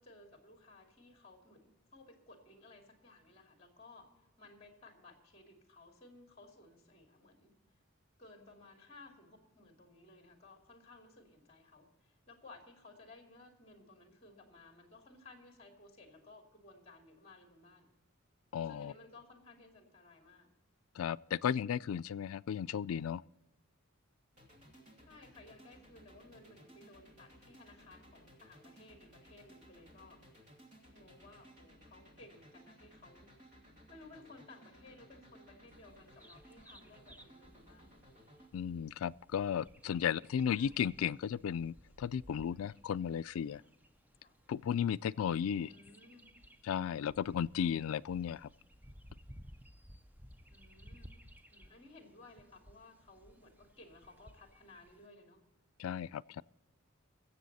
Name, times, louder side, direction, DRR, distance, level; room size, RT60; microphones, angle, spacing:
voice 1, 0.0-4.1 4.4-7.5 8.2-17.9 18.7-20.5 25.0-30.2 30.9-33.3 33.9-37.9 40.0-40.8 44.2-44.4 45.7-46.3 50.5-51.1 51.5-55.4, left 2 dB, 30° left, 2.5 m, -58 dB
voice 2, 18.5-18.9 21.0-23.2 38.5-43.6 44.5-45.7 46.7-48.5 55.8-56.4, left 8 dB, 80° left, 0.3 m, -35 dB
sound 1, 24.3-38.5, equal, 35° right, 2.8 m, -60 dB
Bird vocalization bird call bird song, 35.7-55.1, equal, 10° right, 0.6 m, -59 dB
22.0 x 7.7 x 4.0 m
head